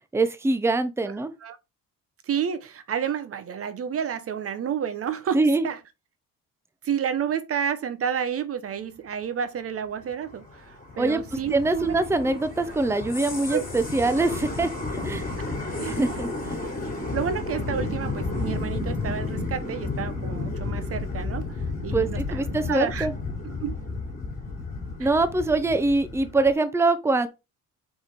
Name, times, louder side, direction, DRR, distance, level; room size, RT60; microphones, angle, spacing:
voice 1, 0.1-1.3 5.3-5.6 11.0-11.2 11.5-14.7 15.0-15.3 15.8-16.3 21.9-23.1 25.0-27.3, right 2 dB, 10° right, 0.7 m, -23 dB
voice 2, 2.2-5.8 6.8-12.0 13.5-13.6 15.4-15.5 15.8-16.2 16.6-16.7 17.1-21.5 21.8-23.1 23.4-23.7 25.0-25.1, right 8 dB, 45° right, 0.8 m, -30 dB
sound 1, 10.0-26.5, left 3 dB, 30° left, 3.3 m, -32 dB
4.9 x 4.8 x 4.1 m
cardioid pair, 100°, 32 cm